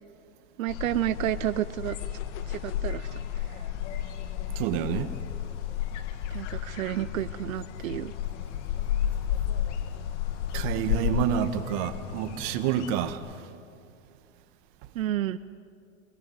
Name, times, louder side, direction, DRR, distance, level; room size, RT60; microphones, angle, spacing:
voice 1, 0.6-2.0 2.5-3.6 6.3-8.1 14.9-15.4, right 13 dB, 90° right, 13 dB, 0.7 m, -31 dB
sound 1, 0.7-13.1, left 10 dB, 60° left, 1.7 m, -32 dB
voice 2, 4.6-5.1 10.5-13.2, right 10 dB, 50° right, 9 dB, 1.8 m, -28 dB
28.0 x 21.5 x 8.0 m, 2.4 s
supercardioid pair, 135°, 39 cm